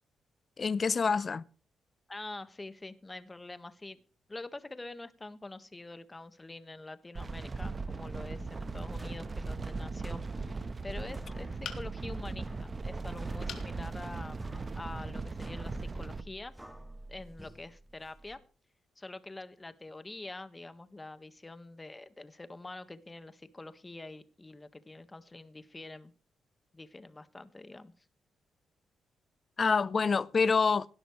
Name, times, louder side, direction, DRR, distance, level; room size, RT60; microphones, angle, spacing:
voice 1, 0.6-1.4 29.6-30.9, left 5 dB, 40° left, 0.7 m, -26 dB
voice 2, 2.1-4.0 4.3-14.5 14.7-16.5 17.1-18.4 19.0-26.1 26.7-27.9, left 2 dB, 20° left, 1.6 m, -46 dB
sound 1, 7.1-16.2, right 3 dB, 35° right, 1.2 m, -38 dB
sound 2, 8.8-18.3, right 1 dB, 5° right, 2.3 m, -49 dB
sound 3, 11.6-12.2 13.5-13.7 14.3-14.4 14.7-14.8, left 8 dB, 75° left, 2.6 m, -42 dB
18.0 x 12.0 x 3.2 m
cardioid pair, 80°, 0 cm